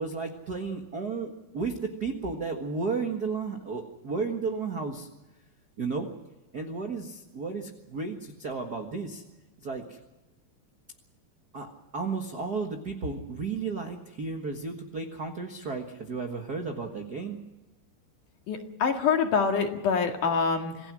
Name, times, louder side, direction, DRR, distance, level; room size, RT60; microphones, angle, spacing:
voice 1, 0.0-5.1 5.8-6.1 6.5-9.2 9.6-10.0 11.5-17.4, right 4 dB, 55° right, 3 dB, 1.0 m, -33 dB
voice 2, 18.5-20.9, left 5 dB, 60° left, 3 dB, 3.3 m, -26 dB
27.0 x 17.0 x 6.2 m, 1.1 s
omnidirectional pair, 4.5 m